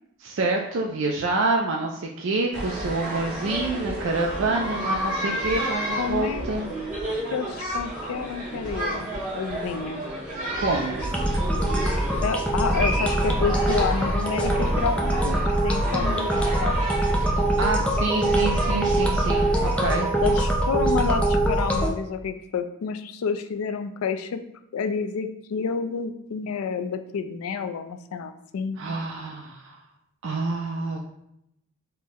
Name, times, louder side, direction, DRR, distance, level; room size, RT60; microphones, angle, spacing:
voice 1, 0.2-6.7 10.6-11.0 17.6-20.1 28.8-29.8 30.2-31.1, right 3 dB, 60° right, 0 dB, 0.4 m, -27 dB
sound 1, 2.5-20.4, right 1 dB, 35° right, 1.0 m, -32 dB
voice 2, 6.0-6.5 7.3-10.1 12.2-16.8 20.2-24.4 24.7-28.8, left 6 dB, 80° left, 9 dB, 0.4 m, -29 dB
sound 2, 11.0-21.9, right 1 dB, 5° left, 0.4 m, -23 dB
4.4 x 2.1 x 3.5 m, 0.77 s
head